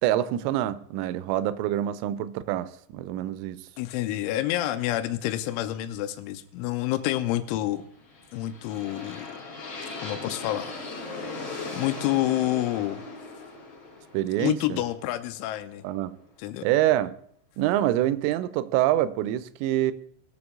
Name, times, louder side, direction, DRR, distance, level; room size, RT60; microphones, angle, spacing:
voice 1, 0.0-3.7 14.1-14.8 15.8-16.2 16.6-17.1 17.6-19.9, right 13 dB, 85° right, 3.1 m, -26 dB
voice 2, 3.8-7.8 8.3-9.4 10.0-10.7 11.1-11.3 11.7-13.0 14.4-15.8 16.4-16.7, left 14 dB, 85° left, 3.0 m, -28 dB
sound 1, 8.0-15.9, left 3 dB, 45° left, 1.5 m, -39 dB
20.0 x 6.9 x 3.6 m
omnidirectional pair, 5.6 m